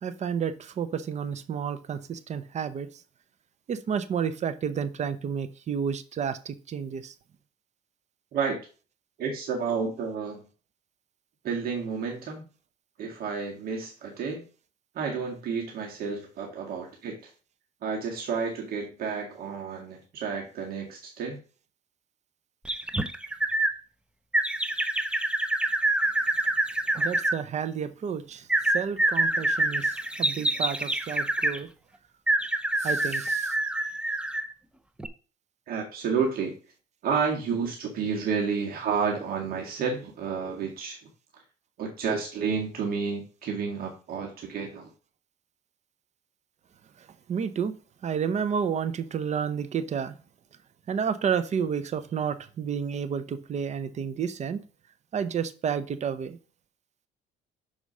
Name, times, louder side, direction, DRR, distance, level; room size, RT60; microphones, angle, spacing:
voice 1, 0.0-2.9 3.7-7.1 27.0-28.5 28.7-31.7 32.8-33.5 47.3-47.8 48.0-50.2 50.9-54.6 55.1-56.4, right 7 dB, 45° right, 0.8 m, -30 dB
voice 2, 9.2-10.4 11.4-12.4 13.0-14.4 15.0-17.3 17.8-21.4 35.7-36.5 37.0-41.0 41.8-44.9, right 5 dB, 60° right, 1.8 m, -30 dB
sound 1, 22.7-23.7 24.3-27.4 28.5-31.6 32.3-34.5 35.0-35.1, right 1 dB, 5° right, 0.6 m, -26 dB
6.3 x 4.9 x 5.4 m
cardioid pair, 110°, 17 cm